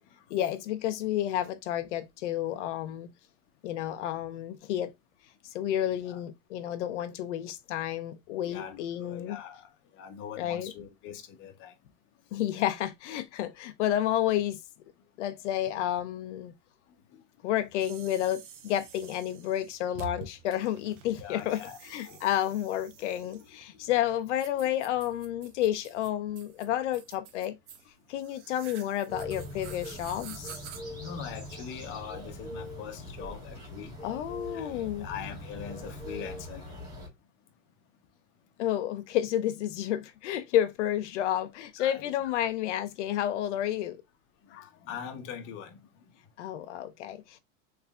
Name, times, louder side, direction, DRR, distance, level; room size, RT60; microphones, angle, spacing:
voice 1, 0.3-3.1 3.6-4.9 5.4-9.4 10.4-10.7 12.3-14.6 15.2-16.5 17.4-27.6 28.1-30.6 34.0-35.1 38.6-44.0 46.4-47.4, left 12 dB, 75° left, 0.6 m, -30 dB
voice 2, 8.4-9.7 9.9-11.7 21.2-21.8 22.0-22.2 31.0-34.0 34.5-37.1 41.8-42.0 44.5-45.9, left 8 dB, 35° left, 0.7 m, -42 dB
sound 1, 17.8-30.8, right 7 dB, 75° right, 0.9 m, -49 dB
sound 2, 29.1-37.1, left 1 dB, 10° right, 1.8 m, -42 dB
3.6 x 3.2 x 2.2 m
supercardioid pair, 145°, 36 cm